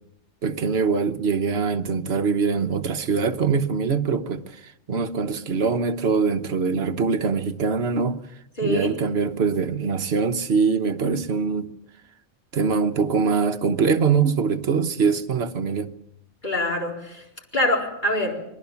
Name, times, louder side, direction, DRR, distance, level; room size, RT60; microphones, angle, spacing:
voice 1, 0.4-4.4 4.9-8.2 8.6-11.7 12.5-15.9, right 5 dB, 55° right, 1.3 m, -23 dB
voice 2, 8.6-8.9 16.4-17.2 17.5-18.4, left 1 dB, 35° left, 4.5 m, -24 dB
26.0 x 20.5 x 7.1 m
omnidirectional pair, 1.4 m